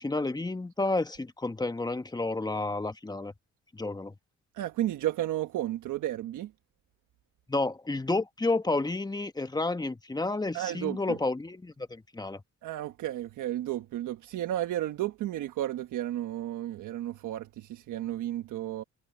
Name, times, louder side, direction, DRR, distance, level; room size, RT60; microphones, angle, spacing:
voice 1, 0.0-3.3 3.7-4.1 7.5-12.4, left 2 dB, 15° left, 1.4 m, -30 dB
voice 2, 4.5-6.5 10.5-11.2 12.6-18.8, right 13 dB, 80° right, 1.3 m, -33 dB
cardioid pair, 90°, 30 cm